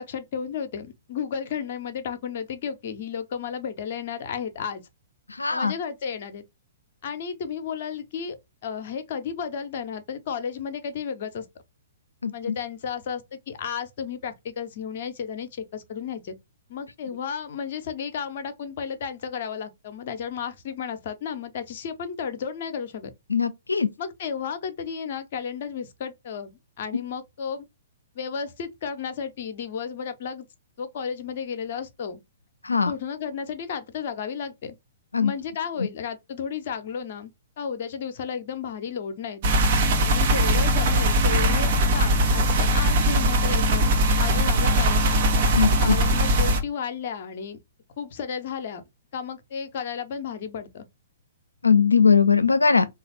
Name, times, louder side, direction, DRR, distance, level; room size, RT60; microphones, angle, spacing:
voice 1, 0.0-4.8 5.5-6.4 7.0-8.4 8.6-11.5 12.3-16.4 16.7-23.1 24.0-27.6 28.1-30.5 30.8-32.2 32.9-34.8 35.2-37.3 37.6-39.4 40.0-45.0 45.8-47.6 48.0-48.8 49.1-50.8, left 7 dB, 45° left, 0.7 m, -33 dB
voice 2, 5.4-5.7 12.2-12.5 23.3-23.9 32.6-32.9 35.1-35.3 45.5-46.0 51.6-52.9, left 5 dB, 80° left, 0.5 m, -20 dB
sound 1, 39.4-46.6, right 1 dB, 45° right, 0.9 m, -20 dB
3.2 x 2.4 x 4.1 m
figure-of-eight pair, 115°, 0 cm